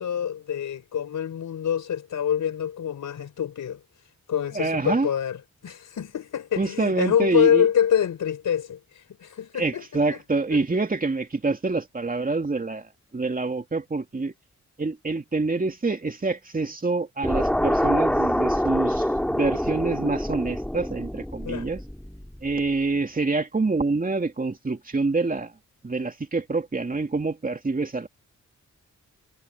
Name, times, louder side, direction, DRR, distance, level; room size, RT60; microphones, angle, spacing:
voice 1, 0.0-3.8 4.3-5.4 5.6-9.8 10.1-10.2 21.4-21.7, left 9 dB, 80° left, 4.4 m, -25 dB
voice 2, 4.5-5.1 6.6-7.7 9.5-14.3 14.8-21.8 22.4-25.5 25.8-28.1, right 3 dB, 30° right, 2.8 m, -26 dB
sound 1, 17.2-22.5, equal, 5° left, 2.3 m, -26 dB
cardioid pair, 95°, 30 cm